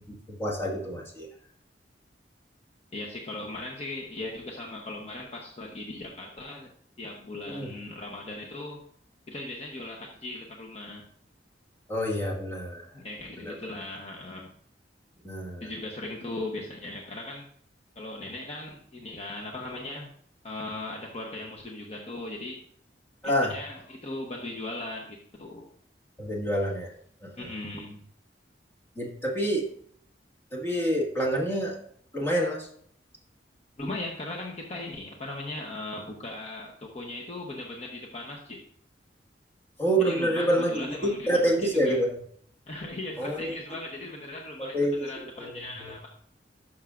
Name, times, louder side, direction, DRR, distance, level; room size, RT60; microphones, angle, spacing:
voice 1, 0.4-1.3 7.5-7.7 11.9-12.9 13.4-13.5 15.2-15.7 23.2-23.5 26.2-26.9 27.2-27.5 28.9-29.7 30.5-31.7 32.1-32.7 39.8-42.1 43.2-43.6 44.7-45.1 45.4-45.5 45.8-45.9, right 1 dB, 15° left, -2 dB, 1.7 m, -27 dB
voice 2, 2.9-6.7 7.0-8.8 9.3-11.0 12.9-14.5 15.6-17.4 18.0-20.1 20.4-22.6 23.2-25.7 27.4-28.0 33.8-38.6 40.0-41.4 41.7-42.0 42.7-46.1, left 2 dB, 35° left, -1 dB, 0.9 m, -38 dB
11.5 x 6.2 x 2.5 m, 0.62 s
head